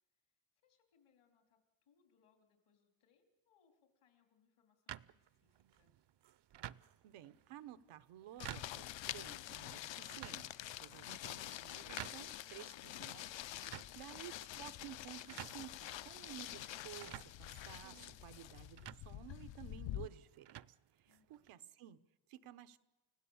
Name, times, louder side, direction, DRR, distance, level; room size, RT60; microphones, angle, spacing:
voice 1, 0.6-6.0 13.4-14.1 21.1-21.6, left 6 dB, 80° left, 3.5 m, -76 dB
sound 1, 4.9-21.5, right 12 dB, 55° right, 0.6 m, -54 dB
voice 2, 7.0-13.6 13.9-20.6 20.9-22.8, right 12 dB, 90° right, 1.0 m, -54 dB
sound 2, 8.4-20.1, left 13 dB, 65° left, 0.6 m, -47 dB
30.0 x 16.5 x 7.1 m
cardioid pair, 75°, 49 cm